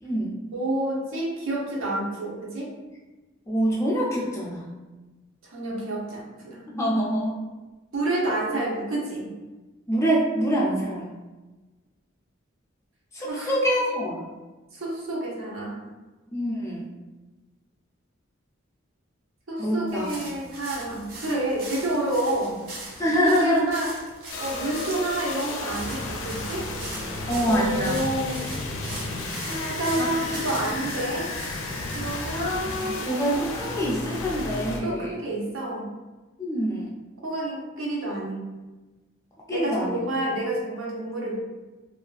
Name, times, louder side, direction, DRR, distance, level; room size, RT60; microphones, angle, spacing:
voice 1, 0.0-0.3 3.5-4.7 6.7-7.4 9.9-11.1 13.1-14.3 16.3-16.9 19.6-20.2 23.0-23.6 27.3-28.0 30.0-30.1 30.6-30.8 32.4-35.1 36.4-36.9 39.5-40.0, equal, 15° left, -4 dB, 0.3 m, -25 dB
voice 2, 0.5-2.7 5.4-6.6 7.9-9.3 13.2-13.5 14.7-15.8 19.5-22.6 23.0-23.9 24.4-26.7 27.4-28.4 29.5-31.3 31.9-32.6 34.8-35.9 37.2-38.4 39.5-41.4, right 1 dB, 85° right, -4 dB, 0.7 m, -29 dB
sound 1, 19.9-32.2, right 2 dB, 45° right, 0.5 m, -41 dB
sound 2, 24.3-34.8, left 2 dB, 85° left, 0.4 m, -33 dB
2.4 x 2.3 x 2.3 m, 1.2 s
head